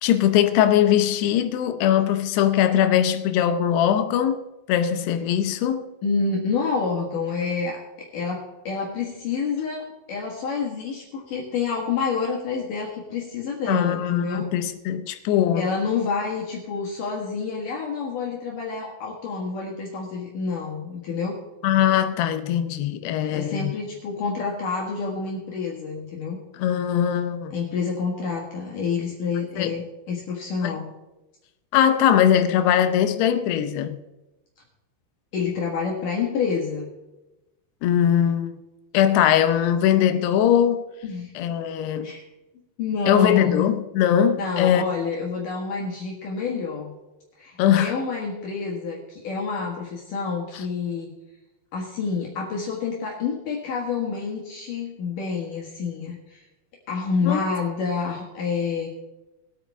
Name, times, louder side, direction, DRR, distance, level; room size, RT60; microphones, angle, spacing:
voice 1, 0.0-4.4 4.7-5.9 13.7-15.7 21.6-23.7 26.6-27.5 29.6-29.8 30.6-30.8 31.7-34.0 37.8-38.5 38.9-40.8 41.4-42.1 43.1-44.8 47.6-48.0 57.3-57.4, left 10 dB, 75° left, 2.7 m, -21 dB
voice 2, 6.0-14.5 15.5-21.4 23.3-26.4 27.5-30.9 35.3-36.9 41.0-41.3 42.0-42.2 42.8-43.6 44.4-46.9 47.4-51.1 51.7-56.4 56.9-58.9, left 5 dB, 55° left, 2.8 m, -28 dB
21.0 x 8.7 x 3.6 m
omnidirectional pair, 5.1 m